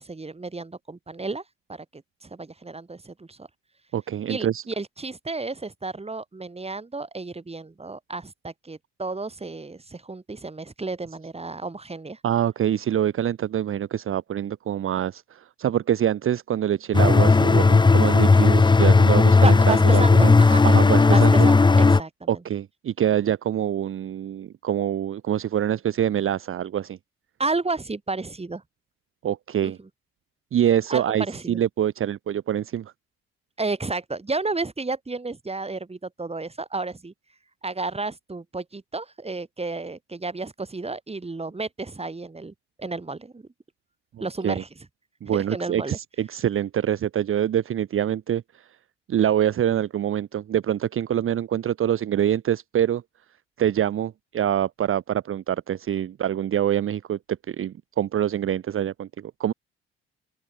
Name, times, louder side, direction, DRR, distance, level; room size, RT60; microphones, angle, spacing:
voice 1, 0.0-1.4 1.7-3.5 4.3-12.2 19.4-20.7 21.1-22.4 27.4-28.6 29.6-29.9 30.9-31.6 33.6-37.1 37.6-43.5 44.2-44.7 45.3-46.0, right 3 dB, 20° right, 3.3 m, -32 dB
voice 2, 3.9-4.6 12.2-20.3 20.6-21.5 22.3-27.0 29.2-29.8 30.5-32.9 44.2-44.6 45.2-48.7 49.1-53.0 53.6-59.5, right 10 dB, 45° right, 1.0 m, -25 dB
sound 1, 16.9-22.0, left 3 dB, 15° left, 0.7 m, -15 dB
open air
hypercardioid pair, 55°, 29 cm